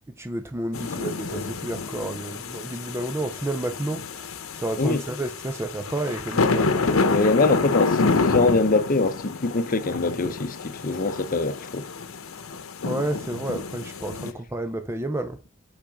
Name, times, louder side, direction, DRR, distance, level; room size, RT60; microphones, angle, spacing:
voice 1, 0.2-7.2 12.8-15.4, right 1 dB, 10° right, 0.5 m, -31 dB
sound 1, 0.7-14.3, left 4 dB, 85° left, 0.8 m, -28 dB
voice 2, 7.1-11.9, left 3 dB, 40° left, 0.7 m, -23 dB
7.3 x 5.0 x 3.5 m
head